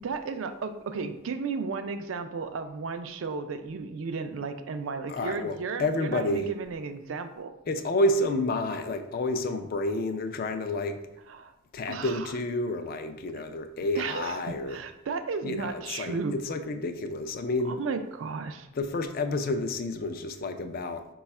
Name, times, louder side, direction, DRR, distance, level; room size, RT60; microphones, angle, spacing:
voice 1, 0.0-7.5 11.3-11.5 11.9-12.3 14.0-16.3 17.7-18.7, right 4 dB, 80° right, 8 dB, 0.4 m, -34 dB
voice 2, 5.1-6.5 7.7-11.0 11.7-14.8 15.4-17.8 18.7-21.1, left 2 dB, 45° left, 8 dB, 0.3 m, -30 dB
4.7 x 2.3 x 4.1 m, 0.90 s
head